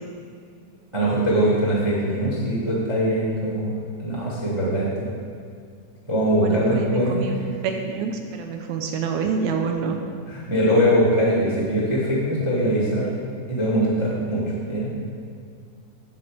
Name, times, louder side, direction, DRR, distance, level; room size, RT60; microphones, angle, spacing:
voice 1, 0.9-4.9 6.0-7.2 10.3-13.1 13.5-14.4 14.7-14.9, equal, 35° right, -6 dB, 0.4 m, -22 dB
voice 2, 6.4-7.4 7.6-10.0, right 5 dB, 75° right, 4 dB, 1.9 m, -27 dB
9.5 x 4.2 x 7.0 m, 2.2 s
omnidirectional pair, 3.7 m